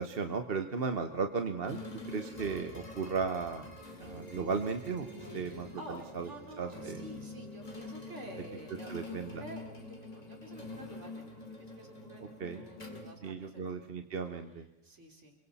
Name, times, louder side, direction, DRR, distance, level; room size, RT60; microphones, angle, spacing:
voice 1, 0.0-1.8 2.1-5.7 6.1-6.3 6.6-7.0 8.9-9.4 12.4-12.6 13.2-14.6, right 5 dB, 50° right, 6 dB, 1.2 m, -35 dB
sound 1, 1.6-13.9, left 2 dB, 35° left, 2.7 m, -46 dB
voice 2, 5.2-9.6 9.9-14.0 14.8-15.3, right 1 dB, 70° right, 2 dB, 3.8 m, -50 dB
27.5 x 23.5 x 4.2 m, 0.88 s
omnidirectional pair, 1.3 m